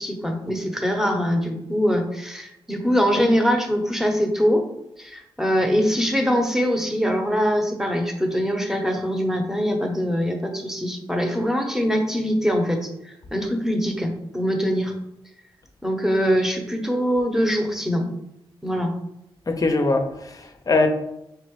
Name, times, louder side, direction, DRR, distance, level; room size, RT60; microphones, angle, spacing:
voice 1, 0.0-4.6 5.0-14.9 15.8-18.1 18.6-18.9, equal, 5° right, 2 dB, 0.9 m, -23 dB
voice 2, 19.5-20.9, left 3 dB, 35° left, 6 dB, 0.6 m, -22 dB
4.7 x 2.9 x 3.1 m, 0.83 s
cardioid pair, 50°, 10 cm